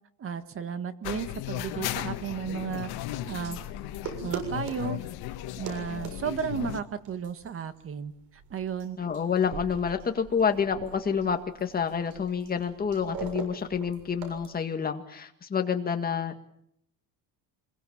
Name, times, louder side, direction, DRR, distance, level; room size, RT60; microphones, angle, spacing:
voice 1, 0.2-2.9 3.3-3.6 4.2-5.0 5.6-9.0, right 7 dB, 35° right, 10 dB, 1.6 m, -34 dB
sound 1, 1.0-6.8, left 14 dB, 75° left, 1.6 m, -36 dB
sound 2, 3.3-14.5, right 6 dB, 80° right, 7.2 m, -42 dB
voice 2, 9.0-16.4, left 6 dB, 25° left, 5 dB, 1.9 m, -28 dB
26.0 x 22.0 x 7.3 m, 0.75 s
cardioid pair, 150°, 38 cm